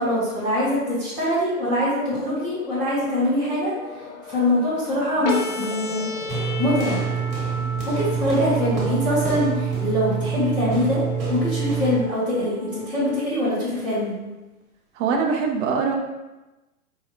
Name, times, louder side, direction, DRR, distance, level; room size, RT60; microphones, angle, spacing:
voice 1, 0.0-3.7 4.3-6.1 6.4-7.0 7.9-11.0 11.3-14.1, left 1 dB, 5° left, -15 dB, 0.4 m, -23 dB
sound 1, 1.4-7.8, left 3 dB, 45° left, 0.7 m, -40 dB
sound 2, 5.2-13.3, left 1 dB, 90° left, 0.9 m, -34 dB
sound 3, 6.3-12.1, right 7 dB, 15° right, 1.1 m, -26 dB
voice 2, 15.0-15.9, right 5 dB, 50° right, 1 dB, 0.5 m, -22 dB
4.5 x 2.3 x 2.9 m, 1.1 s
hypercardioid pair, 140°, 45 cm